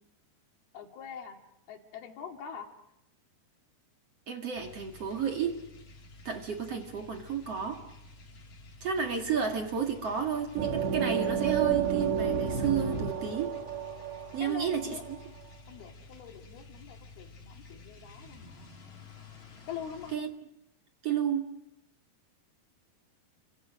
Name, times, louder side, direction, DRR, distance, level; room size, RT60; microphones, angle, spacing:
voice 1, 0.7-1.4 1.7-2.7 14.4-15.0 15.7-18.7 19.7-20.1, left 8 dB, 65° left, 4 dB, 4.1 m, -43 dB
voice 2, 4.3-5.6 6.2-7.8 8.8-13.6 14.3-15.0 20.1-20.3 21.0-21.5, right 7 dB, 45° right, 4 dB, 2.4 m, -31 dB
sound 1, 4.5-20.2, left 3 dB, 35° left, 3.5 m, -51 dB
sound 2, 10.6-15.2, right 7 dB, 80° right, 4.0 m, -30 dB
30.0 x 25.5 x 6.3 m, 0.86 s
omnidirectional pair, 4.9 m